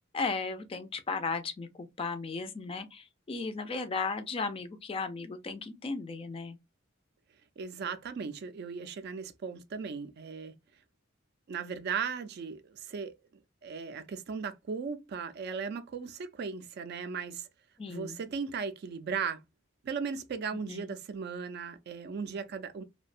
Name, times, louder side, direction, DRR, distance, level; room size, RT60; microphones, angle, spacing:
voice 1, 0.1-6.6 17.8-18.2 20.7-20.9, left 4 dB, 30° left, 0.3 m, -35 dB
voice 2, 7.6-10.5 11.5-13.1 13.6-17.5 17.9-19.4 19.8-22.8, right 5 dB, 55° right, 0.3 m, -37 dB
2.6 x 2.1 x 2.4 m
head